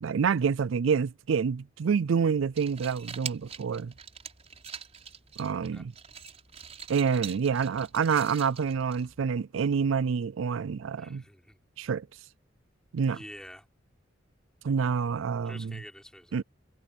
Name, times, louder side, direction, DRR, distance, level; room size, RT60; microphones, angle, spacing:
voice 1, 0.0-3.9 5.4-5.9 6.9-11.2 11.8-12.1 12.9-13.2 14.6-15.8 16.3-16.4, right 6 dB, 85° right, 0.4 m, -27 dB
sound 1, 2.4-9.4, right 7 dB, 35° right, 5.0 m, -44 dB
voice 2, 11.0-11.6 13.1-13.6 15.4-16.4, equal, 5° left, 3.6 m, -47 dB
head